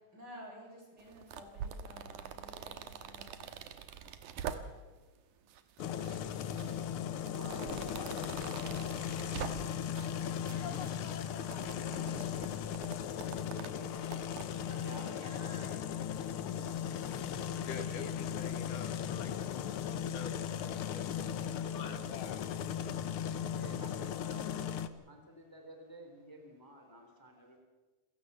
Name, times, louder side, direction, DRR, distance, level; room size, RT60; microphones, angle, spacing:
voice 1, 0.1-3.4 10.2-12.7 14.7-15.9, equal, 30° right, 0 dB, 7.3 m, -53 dB
sound 1, 1.0-5.0 5.5-6.2 6.5-10.2 10.5-14.5, right 8 dB, 85° right, 2.7 m, -45 dB
voice 2, 3.2-4.2 6.2-9.7 13.3-14.3 14.8-15.3 16.7-18.5 23.5-24.5 25.1-27.6, equal, 5° left, 4 dB, 3.0 m, -53 dB
sound 2, 5.8-24.9, left 9 dB, 65° left, 1.4 m, -37 dB
voice 3, 17.5-19.3 19.7-22.4, left 5 dB, 85° left, 7 dB, 3.4 m, -46 dB
28.5 x 17.0 x 6.8 m, 1.3 s
omnidirectional pair, 3.6 m